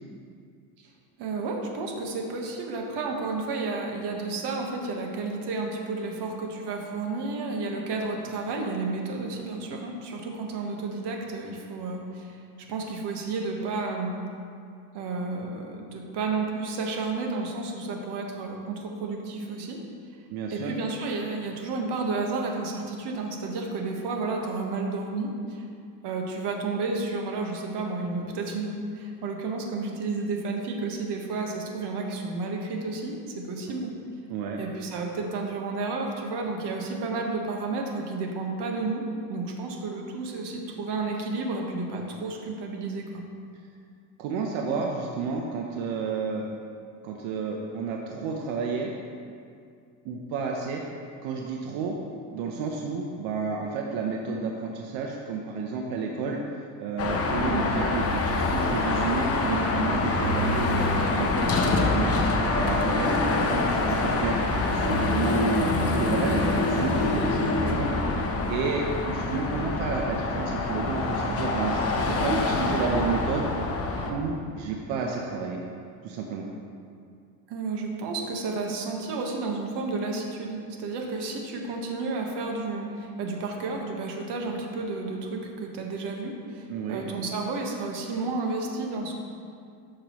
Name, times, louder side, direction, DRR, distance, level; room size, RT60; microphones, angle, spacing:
voice 1, 1.2-12.4 12.7-14.2 14.9-19.8 20.5-25.7 26.0-33.9 34.6-39.0 39.3-43.2 57.4-57.7 77.5-89.2, right 3 dB, 60° right, 1 dB, 1.4 m, -31 dB
voice 2, 20.3-20.7 34.3-34.6 44.2-46.5 47.0-48.9 50.0-50.8 51.2-52.0 52.3-56.4 56.8-64.4 64.7-73.5 74.1-75.6 76.0-76.5 86.7-87.0, right 5 dB, 85° right, 0 dB, 1.0 m, -31 dB
Car passing by / Traffic noise roadway noise / Engine, 57.0-74.1, left 3 dB, 30° left, 0.9 m, -25 dB
12.5 x 6.6 x 3.1 m, 2.3 s
cardioid pair, 140°, 46 cm